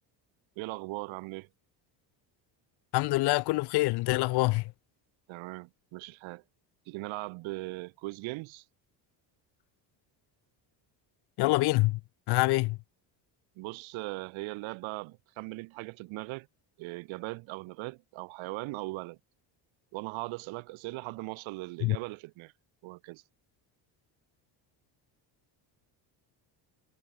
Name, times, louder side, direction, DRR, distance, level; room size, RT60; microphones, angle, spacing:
voice 1, 0.6-1.5 5.3-6.4 6.9-8.6 13.6-16.5 16.8-19.2 19.9-22.5 22.8-23.2, right 23 dB, 80° right, 1.6 m, -39 dB
voice 2, 2.9-4.6 11.4-12.0 12.3-12.8 21.8-22.0, left 21 dB, 60° left, 0.6 m, -25 dB
cardioid pair, 155°, 46 cm